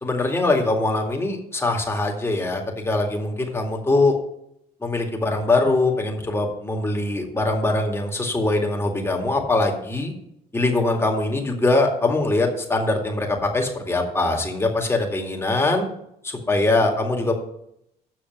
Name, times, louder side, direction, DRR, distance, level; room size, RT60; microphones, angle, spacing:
voice 1, 0.0-4.1 4.8-10.1 10.5-15.9 16.2-17.3, left 2 dB, 15° left, 1 dB, 2.2 m, -22 dB
7.9 x 6.3 x 8.1 m, 0.77 s
cardioid pair, 110°, 17 cm